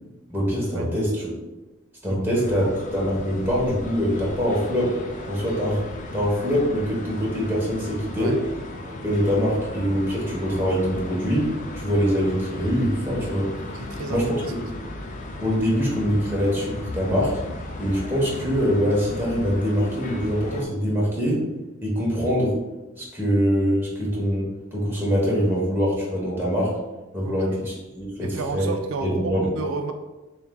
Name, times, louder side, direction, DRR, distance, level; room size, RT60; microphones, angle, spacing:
voice 1, 0.3-1.1 2.0-2.6 2.9-4.9 5.3-5.8 6.1-8.4 8.9-13.5 14.1-14.2 15.4-17.4 17.8-21.4 21.8-22.5 23.0-26.7 27.1-28.7 29.0-29.5, equal, 10° right, -5 dB, 1.0 m, -24 dB
voice 2, 2.1-2.7 8.2-8.4 13.7-14.5 27.2-27.6 28.2-29.9, right 4 dB, 75° right, 6 dB, 0.3 m, -32 dB
sound 1, 2.3-20.6, left 2 dB, 35° left, 0.4 m, -36 dB
6.8 x 2.4 x 2.2 m, 1.1 s
head